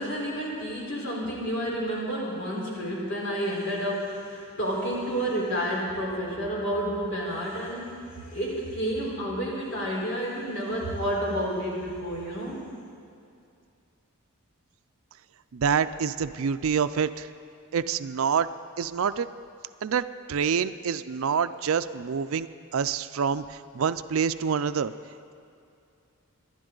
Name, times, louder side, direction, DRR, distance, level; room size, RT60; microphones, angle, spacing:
voice 1, 0.0-12.6, equal, 55° left, -4 dB, 4.3 m, -30 dB
voice 2, 15.5-17.3 17.7-18.5 18.8-19.3 19.8-24.9, right 6 dB, 70° right, 13 dB, 0.4 m, -27 dB
25.0 x 11.5 x 3.9 m, 2.5 s
head